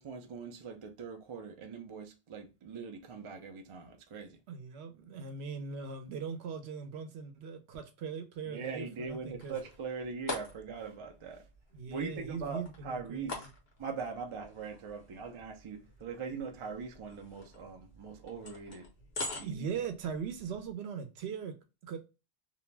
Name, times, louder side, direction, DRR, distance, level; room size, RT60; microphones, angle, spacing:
voice 1, 0.0-4.4 8.4-11.5 11.9-13.5 13.8-18.9 19.3-19.9, right 5 dB, 45° right, 0.4 m, -41 dB
voice 2, 4.5-9.6 11.7-13.5 19.4-21.5 21.8-22.0, right 6 dB, 85° right, 0.8 m, -40 dB
sound 1, 9.0-20.7, left 3 dB, 70° left, 1.1 m, -46 dB
2.6 x 2.0 x 3.2 m
omnidirectional pair, 1.0 m